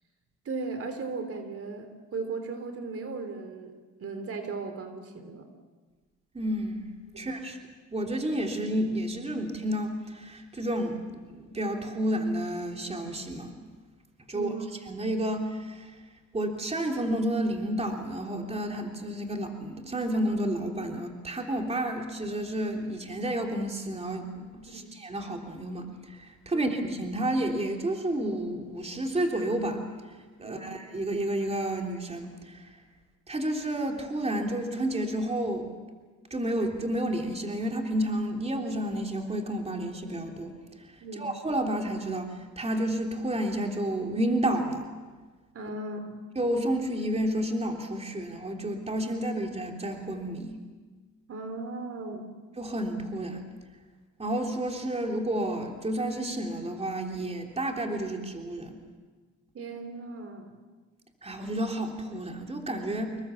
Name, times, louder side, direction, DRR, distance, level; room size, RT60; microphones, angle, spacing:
voice 1, 0.4-3.7 4.0-5.5 7.1-7.4 14.3-14.7 24.7-24.9 26.5-26.6 30.4-30.7 41.0-41.3 45.5-46.2 51.3-52.3 59.5-60.6, right 3 dB, 50° right, 8 dB, 3.4 m, -37 dB
voice 2, 6.3-6.9 7.2-7.6 7.9-13.6 14.3-14.5 14.9-15.9 16.3-29.8 30.1-32.7 33.3-35.7 36.3-40.5 41.2-44.9 46.3-50.6 52.6-53.4 54.2-58.8 61.2-63.2, right 1 dB, 20° right, 2 dB, 3.3 m, -30 dB
27.0 x 22.0 x 7.2 m, 1.4 s
cardioid pair, 90°, 30 cm